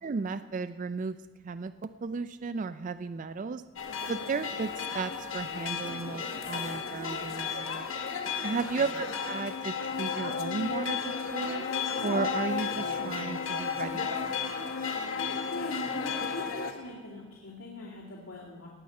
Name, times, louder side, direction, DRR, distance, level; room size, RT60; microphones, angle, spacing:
voice 1, 0.0-1.2 1.4-3.6 4.1-7.9 8.4-11.7 12.0-14.4, right 4 dB, 35° right, 12 dB, 0.3 m, -34 dB
sound 1, 3.8-16.7, left 5 dB, 65° left, 1.2 m, -33 dB
voice 2, 15.5-18.7, left 1 dB, 85° left, -6 dB, 2.4 m, -41 dB
18.5 x 7.8 x 5.3 m, 1.5 s
head